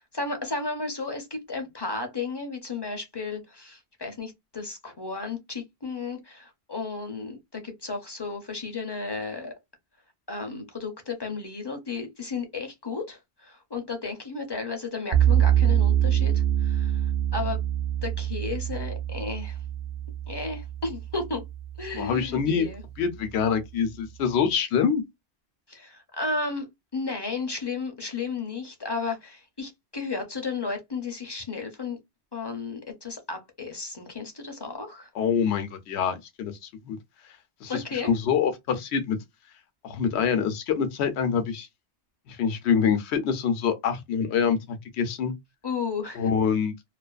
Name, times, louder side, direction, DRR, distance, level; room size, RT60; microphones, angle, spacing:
voice 1, 0.0-9.5 10.3-17.6 18.0-19.6 20.3-21.4 21.8-22.8 25.7-26.7 26.9-32.0 32.3-35.1 37.7-38.1 45.6-46.3, left 4 dB, 30° left, 0.5 m, -33 dB
sound 1, 15.1-22.2, right 10 dB, 60° right, 0.6 m, -25 dB
voice 2, 21.9-22.7 23.0-25.0 35.1-37.0 37.6-39.2 39.8-41.7 42.3-45.3 46.2-46.7, left 7 dB, 75° left, 0.9 m, -25 dB
2.5 x 2.4 x 2.3 m
omnidirectional pair, 1.1 m